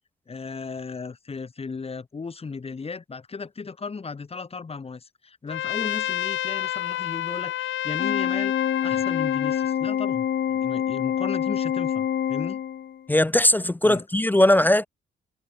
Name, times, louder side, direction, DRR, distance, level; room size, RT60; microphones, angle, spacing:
voice 1, 0.3-12.6 13.8-14.0, left 4 dB, 30° left, 2.2 m, -36 dB
Trumpet, 5.5-9.8, left 13 dB, 75° left, 1.6 m, -29 dB
Organ, 8.0-13.0, left 9 dB, 60° left, 2.4 m, -26 dB
voice 2, 13.1-14.9, left 1 dB, 10° left, 0.4 m, -19 dB
cardioid pair, 90°, 20 cm